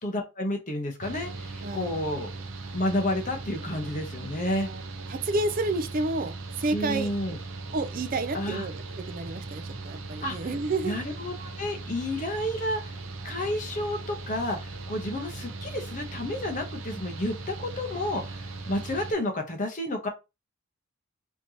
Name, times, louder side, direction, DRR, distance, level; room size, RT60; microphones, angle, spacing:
voice 1, 0.0-2.3 2.7-4.7 6.7-7.4 8.3-8.6 10.2-10.4 10.8-13.0 13.2-20.1, left 1 dB, 35° left, 1.0 m, -31 dB
Mechanical fan, 1.0-19.1, right 3 dB, 70° right, 0.7 m, -39 dB
voice 2, 4.4-4.8 5.1-7.1 7.7-11.0, right 2 dB, 40° right, 0.4 m, -30 dB
4.3 x 3.0 x 2.8 m
head